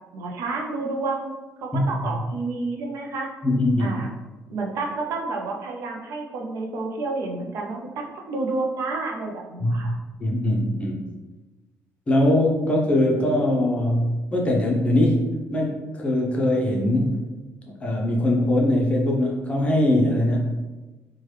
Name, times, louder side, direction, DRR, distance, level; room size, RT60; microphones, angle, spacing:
voice 1, 0.1-1.3 1.6-3.3 3.8-4.1 4.5-9.9, right 3 dB, 65° right, 1 dB, 0.5 m, -30 dB
voice 2, 3.4-4.0 9.6-9.9 10.2-11.0 12.1-17.2 17.7-20.6, left 1 dB, 20° left, -1 dB, 0.6 m, -22 dB
3.1 x 2.2 x 3.2 m, 1.2 s
cardioid pair, 135°, 6 cm